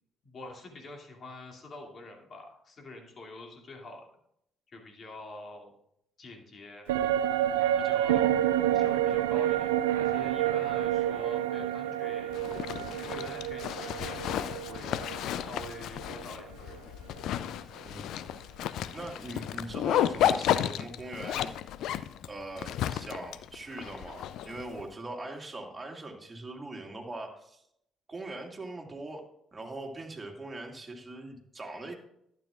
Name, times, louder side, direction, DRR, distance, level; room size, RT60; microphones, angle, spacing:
voice 1, 0.2-4.1 4.7-5.7 6.2-6.9 7.5-8.4 8.7-12.5 13.1-15.0 15.4-16.8, left 2 dB, 50° left, 2 dB, 2.5 m, -46 dB
sound 1, 6.9-16.4 16.7-16.8, right 11 dB, 85° right, 0.4 m, -29 dB
Zipper (clothing), 12.3-24.8, left 11 dB, 70° left, 0.4 m, -33 dB
voice 2, 17.8-18.3 18.9-21.5 22.3-27.6 28.1-29.3 29.5-31.9, right 2 dB, 25° right, 1 dB, 2.2 m, -41 dB
12.0 x 9.2 x 2.4 m, 0.74 s
hypercardioid pair, 50°, 0 cm